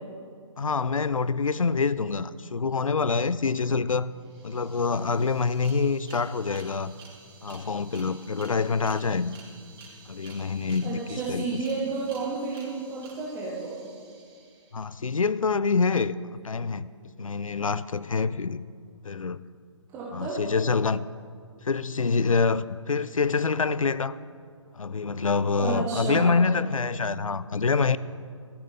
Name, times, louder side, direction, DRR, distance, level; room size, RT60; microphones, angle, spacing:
voice 1, 0.6-4.1 4.4-6.9 7.4-9.4 10.1-11.5 14.7-16.9 17.2-18.6 19.0-19.5 20.1-21.1 21.6-24.2 24.7-28.0, left 4 dB, 80° left, 0.4 m, -26 dB
sound 1, 3.9-4.0 4.2-15.0, right 4 dB, 45° right, 3.6 m, -51 dB
voice 2, 10.8-13.8 19.9-20.3 25.6-26.4, right 4 dB, 15° right, 1.6 m, -31 dB
14.5 x 14.0 x 3.7 m
figure-of-eight pair, 135°, 17 cm